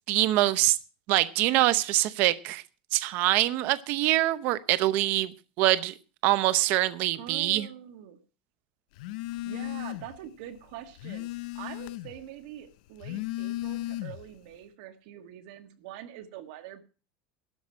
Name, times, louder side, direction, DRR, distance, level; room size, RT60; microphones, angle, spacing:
voice 1, 0.1-0.8 1.1-2.6 2.9-5.9 6.2-7.7, right 16 dB, 40° right, 14 dB, 0.7 m, -24 dB
voice 2, 7.1-8.2 9.4-16.8, right 11 dB, 55° right, 7 dB, 1.7 m, -44 dB
Telephone, 9.0-10.2 10.6-12.2 12.9-14.4, left 16 dB, 60° left, 0.6 m, -36 dB
12.5 x 5.9 x 8.7 m, 0.35 s
supercardioid pair, 180°, 5 cm